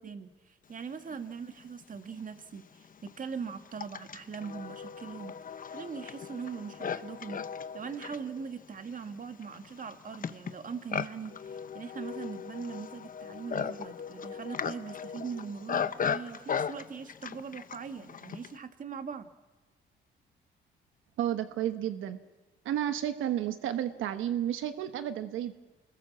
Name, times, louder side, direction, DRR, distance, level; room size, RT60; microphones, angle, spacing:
voice 1, 0.0-5.4 5.7-7.4 7.7-19.3, right 6 dB, 45° right, 7 dB, 2.1 m, -41 dB
Livestock farm animals working animals, 1.8-1.9 2.6-18.6, left 7 dB, 45° left, 1.0 m, -37 dB
voice 2, 21.2-22.2 22.6-25.5, right 11 dB, 85° right, 9 dB, 1.1 m, -31 dB
28.0 x 20.5 x 7.4 m, 1.2 s
cardioid pair, 90°, 20 cm